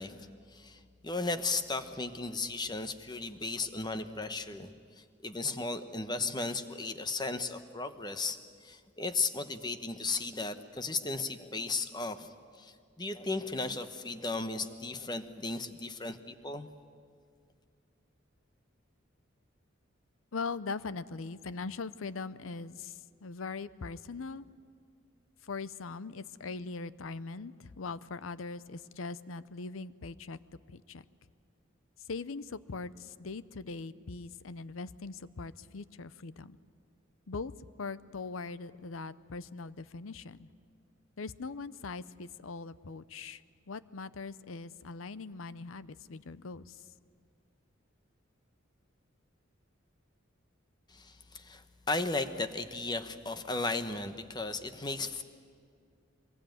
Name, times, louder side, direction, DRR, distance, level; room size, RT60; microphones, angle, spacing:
voice 1, 0.0-4.7 5.0-16.7 50.9-55.2, left 3 dB, 20° left, 9 dB, 1.0 m, -35 dB
voice 2, 20.3-24.5 25.4-30.4 30.7-31.0 32.1-36.6 37.3-37.5 37.8-40.5 41.2-46.8, left 4 dB, 90° left, 16 dB, 0.7 m, -41 dB
24.0 x 21.0 x 9.2 m, 2.2 s
head